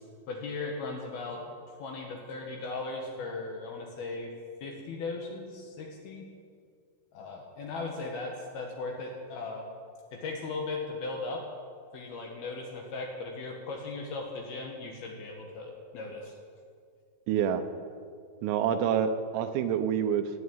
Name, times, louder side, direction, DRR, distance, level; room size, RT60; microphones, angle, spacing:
voice 1, 0.3-1.4 1.7-4.3 4.6-6.3 7.1-9.6 10.1-11.4 11.9-16.3, left 3 dB, 65° left, 1 dB, 2.7 m, -37 dB
voice 2, 17.3-17.6 18.4-20.3, right 8 dB, 90° right, 9 dB, 3.6 m, -27 dB
16.5 x 8.4 x 8.8 m, 2.2 s
omnidirectional pair, 5.8 m